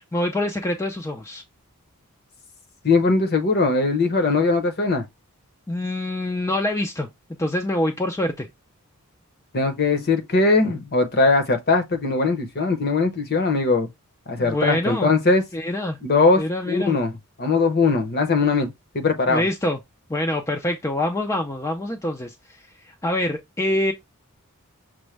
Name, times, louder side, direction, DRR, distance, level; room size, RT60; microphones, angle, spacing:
voice 1, 0.0-1.4 5.7-7.1 7.4-8.5 14.4-15.1 15.5-16.0 16.4-17.0 19.3-19.8 20.1-23.9, left 1 dB, 15° left, 0.4 m, -25 dB
voice 2, 2.8-5.0 9.5-13.9 14.3-15.4 16.0-17.1 17.4-18.7 18.9-19.4, left 3 dB, 45° left, 0.8 m, -20 dB
6.1 x 2.1 x 3.2 m
head